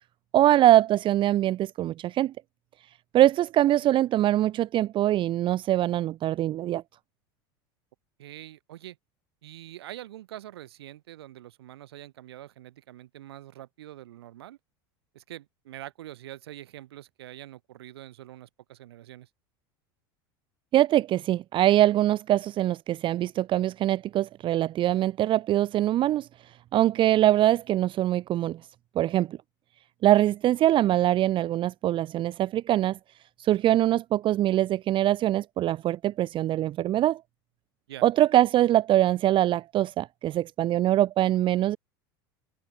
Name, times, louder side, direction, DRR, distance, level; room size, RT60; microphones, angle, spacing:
voice 1, 0.3-2.3 3.1-6.8 20.7-26.3 26.7-28.6 29.0-29.4 30.0-33.0 33.4-37.2 38.0-41.8, right 13 dB, 40° right, 0.6 m, -23 dB
voice 2, 8.2-9.0 9.4-14.6 15.1-19.3 37.9-38.1, right 13 dB, 85° right, 4.4 m, -44 dB
supercardioid pair, 100°, 13 cm